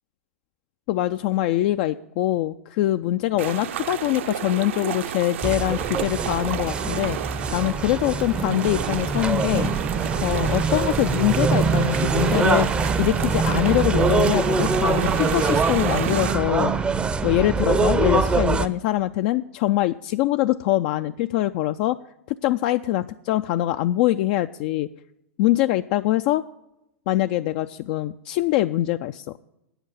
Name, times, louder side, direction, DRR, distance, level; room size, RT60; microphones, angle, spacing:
voice 1, 0.9-9.7 10.2-12.7 13.0-16.7 17.2-22.0 22.3-24.9 25.4-26.4 27.1-29.3, left 15 dB, 45° left, 9 dB, 0.4 m, -23 dB
sound 1, 3.4-16.3, right 10 dB, 60° right, 0.7 m, -31 dB
sound 2, 5.4-18.7, right 4 dB, 15° right, 0.6 m, -23 dB
9.5 x 8.0 x 8.9 m, 0.87 s
figure-of-eight pair, 100°, 7 cm